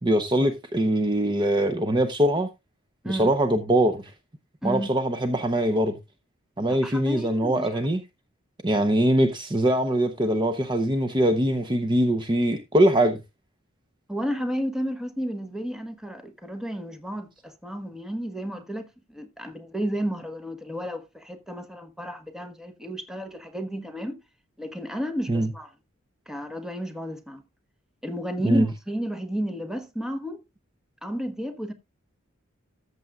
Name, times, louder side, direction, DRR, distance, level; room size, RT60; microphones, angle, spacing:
voice 1, 0.0-2.5 3.1-4.1 4.6-6.0 6.6-8.0 8.6-13.2 25.3-25.5 28.4-28.7, right 1 dB, 20° right, 0.8 m, -22 dB
voice 2, 4.6-4.9 6.7-7.8 14.1-24.2 24.6-25.7 26.3-27.4 28.0-30.4 31.0-31.7, equal, 5° right, 1.2 m, -32 dB
14.0 x 7.7 x 2.4 m
head